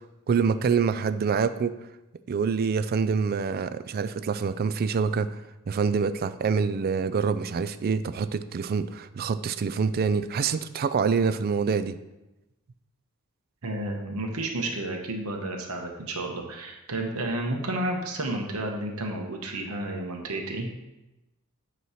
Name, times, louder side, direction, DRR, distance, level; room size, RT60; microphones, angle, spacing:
voice 1, 0.3-1.7 2.3-5.4 5.7-12.0, right 5 dB, 45° right, 13 dB, 0.3 m, -26 dB
voice 2, 13.6-20.7, right 1 dB, 70° right, 2 dB, 1.0 m, -31 dB
8.3 x 3.1 x 5.7 m, 0.98 s
head